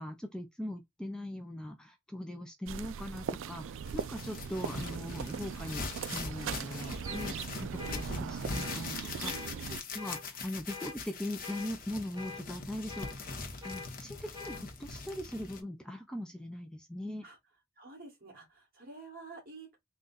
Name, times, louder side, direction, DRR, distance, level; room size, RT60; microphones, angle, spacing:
voice 1, 0.0-13.3 13.6-17.3, left 1 dB, 5° left, 0.4 m, -41 dB
sound 1, 2.7-9.8, right 7 dB, 60° right, 0.4 m, -39 dB
sound 2, 3.9-15.6, left 4 dB, 45° left, 0.9 m, -42 dB
sound 3, 7.0-7.3 7.8-8.0 8.5-8.8 9.2-9.5 10.0-10.2 10.7-11.0 11.4-11.7 12.2-12.4 12.9-13.2 13.6-13.9 14.3-14.6, left 4 dB, 20° right, 0.8 m, -44 dB
voice 2, 9.2-9.6 17.2-17.4 17.8-19.8, right 3 dB, 45° right, 2.1 m, -49 dB
3.8 x 2.3 x 3.9 m
head